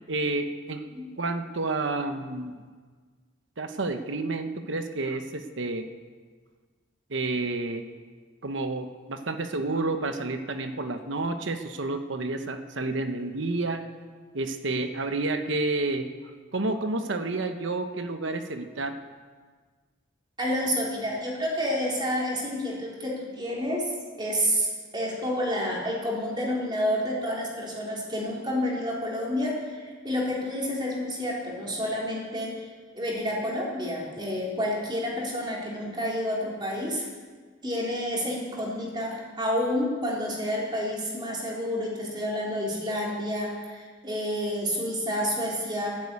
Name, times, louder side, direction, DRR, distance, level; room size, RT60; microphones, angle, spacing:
voice 1, 0.1-0.8 1.2-2.6 3.6-5.9 7.1-7.9 8.4-13.8 14.3-16.1 16.5-19.0, right 2 dB, 70° right, 7 dB, 1.0 m, -30 dB
voice 2, 20.4-23.9 24.2-32.7 32.9-37.1 37.6-45.9, equal, 25° right, -3 dB, 3.7 m, -29 dB
11.5 x 11.0 x 8.6 m, 1.5 s
head